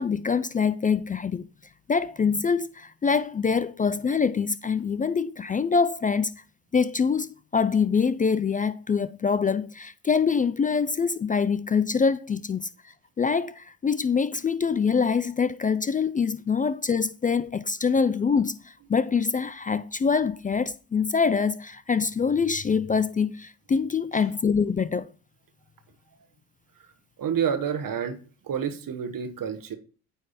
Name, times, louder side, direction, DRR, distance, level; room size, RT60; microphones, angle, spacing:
voice 1, 0.0-1.4 1.9-6.3 6.7-12.7 13.2-25.1, left 5 dB, 20° left, 0.3 m, -25 dB
voice 2, 27.2-28.2 28.4-29.8, right 8 dB, 50° right, 1.2 m, -29 dB
9.3 x 3.4 x 4.1 m
hypercardioid pair, 50°, 44 cm